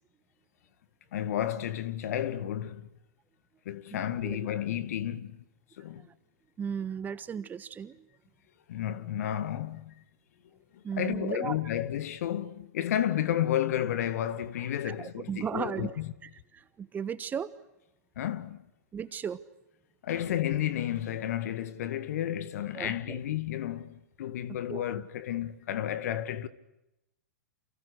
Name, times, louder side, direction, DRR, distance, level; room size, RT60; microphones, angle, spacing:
voice 1, 1.1-2.9 3.7-5.4 5.8-6.0 8.7-10.0 10.7-16.1 18.2-18.6 20.0-26.5, left 11 dB, 60° left, 2.0 m, -32 dB
voice 2, 6.6-8.1 10.8-11.5 14.8-15.9 16.2-17.5 18.9-19.4 22.7-23.2 24.7-24.8, right 7 dB, 20° right, 1.3 m, -36 dB
29.0 x 28.5 x 6.4 m
hypercardioid pair, 115°, 9 cm